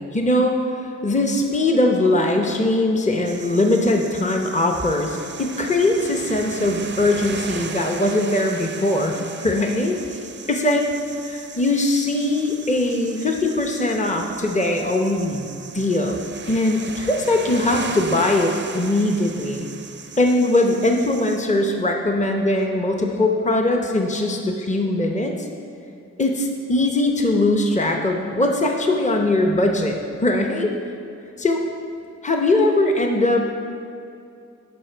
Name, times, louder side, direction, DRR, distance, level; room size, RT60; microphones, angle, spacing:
voice 1, 0.0-10.2 10.5-10.8 11.2-15.5 15.7-19.7 20.2-25.5 26.2-30.7 31.4-31.6 32.2-33.4, left 2 dB, 25° left, 2 dB, 0.8 m, -21 dB
sound 1, 3.3-21.4, right 5 dB, 40° right, 0.5 m, -37 dB
11.0 x 4.7 x 4.5 m, 2.5 s
cardioid pair, 50°, 30 cm